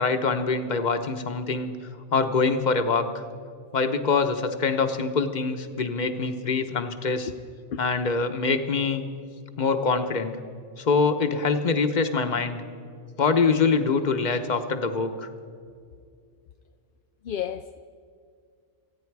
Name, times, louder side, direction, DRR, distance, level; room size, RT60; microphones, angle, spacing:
voice 1, 0.0-1.7 2.1-3.2 3.7-7.3 7.8-9.0 9.6-10.4 10.8-12.6 13.2-15.3, left 4 dB, 40° left, 8 dB, 1.0 m, -24 dB
voice 2, 17.2-17.8, left 9 dB, 60° left, 7 dB, 0.6 m, -31 dB
28.5 x 9.7 x 4.7 m, 2.2 s
omnidirectional pair, 1.3 m